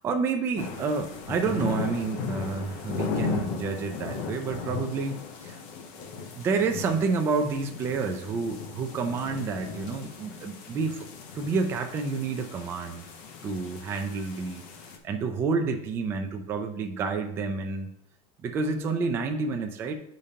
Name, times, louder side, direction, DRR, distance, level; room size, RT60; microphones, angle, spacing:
voice 1, 0.0-5.6 6.1-11.1 11.3-13.0 13.4-14.6 15.0-17.9 18.4-19.9, right 4 dB, 10° right, 4 dB, 0.3 m, -29 dB
sound 1, 0.6-15.0, left 5 dB, 40° left, 0.8 m, -37 dB
8.3 x 5.1 x 2.8 m, 0.76 s
supercardioid pair, 180°, 20 cm